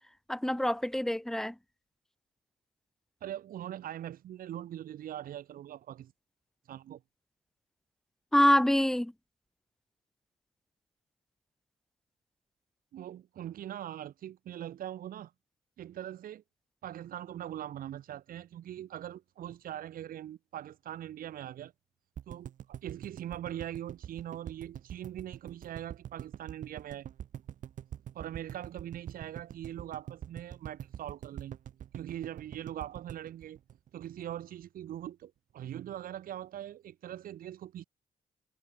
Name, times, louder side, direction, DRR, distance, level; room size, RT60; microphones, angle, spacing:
voice 1, 0.3-1.5 8.3-9.1, left 1 dB, 5° left, 0.4 m, -25 dB
voice 2, 3.2-6.1 6.7-7.0 12.9-15.3 15.8-16.4 16.8-21.7 22.3-27.1 28.1-31.6 31.9-33.6 33.9-37.8, right 11 dB, 75° right, 1.6 m, -42 dB
sound 1, 22.2-34.3 34.6-34.7 34.9-35.0, right 10 dB, 60° right, 0.6 m, -44 dB
cardioid pair, 80°, 15 cm